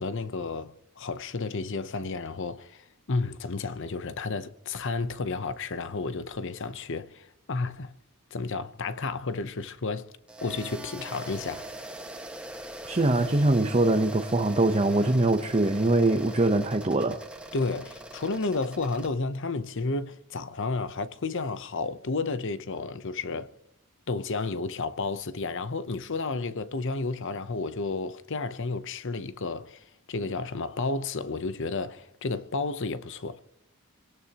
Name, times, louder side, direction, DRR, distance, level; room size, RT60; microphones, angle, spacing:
voice 1, 0.0-7.9 8.3-10.1 10.4-11.7 17.5-23.5 24.1-33.4, left 3 dB, 55° left, 0.8 m, -32 dB
sound 1, 10.3-19.1, right 1 dB, 5° right, 1.5 m, -42 dB
voice 2, 12.8-17.2, right 2 dB, 30° right, 0.8 m, -23 dB
27.5 x 18.0 x 2.9 m
head